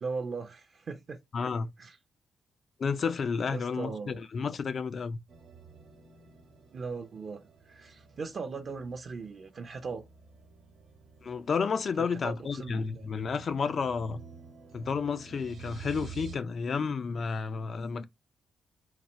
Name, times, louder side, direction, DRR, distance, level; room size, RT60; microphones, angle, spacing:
voice 1, 0.0-1.2 1.8-2.0 3.5-4.2 6.7-10.0 12.0-13.1, right 4 dB, 35° right, 0.5 m, -39 dB
voice 2, 1.3-1.7 2.8-5.2 11.2-14.2 14.7-18.0, left 5 dB, 40° left, 0.4 m, -31 dB
sound 1, 5.3-16.4, right 7 dB, 60° right, 1.1 m, -51 dB
4.0 x 2.4 x 4.3 m
cardioid pair, 165°, 0 cm